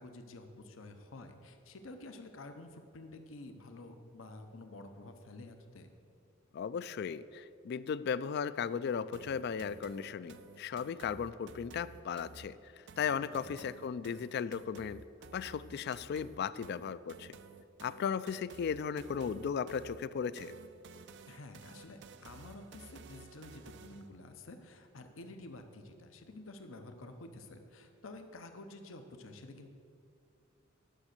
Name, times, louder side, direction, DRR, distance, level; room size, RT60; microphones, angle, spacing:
voice 1, 0.0-5.9 13.4-13.6 21.3-29.7, left 2 dB, 90° left, 7 dB, 0.8 m, -50 dB
voice 2, 6.5-15.0 15.3-17.4 17.8-20.5, left 7 dB, 55° left, 16 dB, 0.3 m, -36 dB
sound 1, 9.1-24.1, right 4 dB, 60° right, 0.5 m, -54 dB
10.0 x 6.2 x 6.6 m, 2.4 s
head